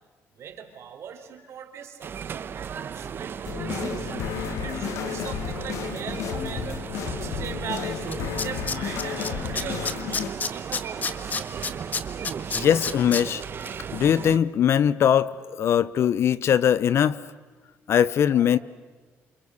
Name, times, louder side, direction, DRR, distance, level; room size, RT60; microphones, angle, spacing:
voice 1, 0.3-6.8 7.1-11.8 18.3-18.5, right 8 dB, 60° right, 4.1 m, -40 dB
sound 1, 2.0-14.4, right 7 dB, 45° right, 1.1 m, -35 dB
sound 2, 3.4-10.3, left 9 dB, 80° left, 1.6 m, -32 dB
Tools, 7.8-7.9 8.1-9.3 9.6-13.2 13.6-13.7, left 5 dB, 35° left, 1.7 m, -28 dB
voice 2, 12.5-13.4 13.9-17.2 17.9-18.6, left 9 dB, 60° left, 0.9 m, -21 dB
28.5 x 27.5 x 6.6 m
cardioid pair, 120°, 5 cm